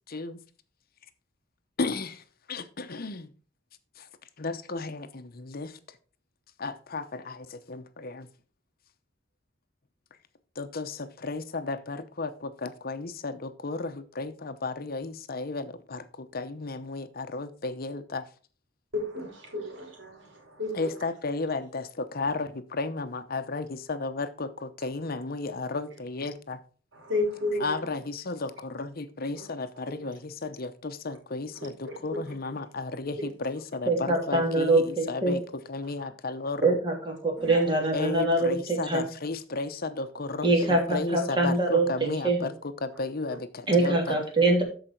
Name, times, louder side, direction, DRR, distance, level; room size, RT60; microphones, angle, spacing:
voice 1, 0.1-0.4 1.8-2.2 2.5-3.3 4.0-4.1 4.4-5.8 6.6-8.3 10.6-18.3 20.7-26.6 27.5-35.4 35.7-36.7 37.9-42.5 42.8-44.2, left 3 dB, 55° left, 0.8 m, -34 dB
voice 2, 18.9-20.9 26.9-27.8 29.4-29.5 30.0-30.1 31.6-32.2 33.2-33.3 36.0-36.1 37.4-37.9 40.6-40.7, left 2 dB, 85° right, 3.3 m, -33 dB
voice 3, 33.9-35.3 36.6-39.0 40.4-42.5 43.7-44.6, right 2 dB, 25° right, 3.0 m, -24 dB
13.5 x 5.0 x 4.5 m
head